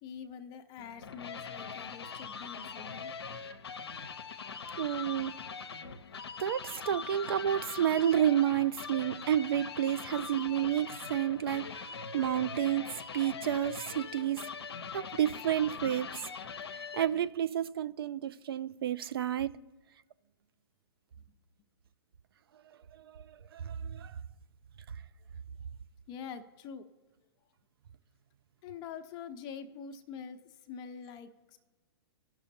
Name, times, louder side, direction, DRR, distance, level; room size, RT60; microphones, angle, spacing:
voice 1, 0.0-3.1 3.6-3.8 21.2-21.4 26.1-26.9 28.6-31.6, left 7 dB, 30° left, 0.7 m, -45 dB
sound 1, 0.8-17.3, left 6 dB, 75° left, 0.7 m, -42 dB
voice 2, 4.8-5.3 6.4-14.5 14.9-16.3 16.7-19.6 22.9-24.2, right 10 dB, 65° right, 0.4 m, -30 dB
17.0 x 6.1 x 2.7 m
hypercardioid pair, 115°, 13 cm